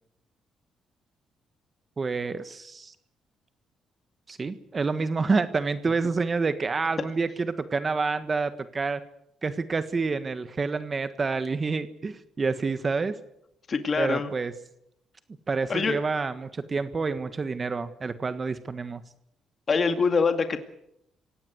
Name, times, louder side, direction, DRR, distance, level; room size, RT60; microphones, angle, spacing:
voice 1, 2.0-2.9 4.3-9.0 9.4-13.1 14.0-14.5 15.5-19.0, right 4 dB, 35° right, 11 dB, 1.4 m, -28 dB
voice 2, 13.7-14.3 15.7-16.0 19.7-20.6, left 5 dB, 40° left, 7 dB, 2.1 m, -24 dB
26.5 x 17.5 x 7.9 m, 0.79 s
cardioid pair, 90°, 0 cm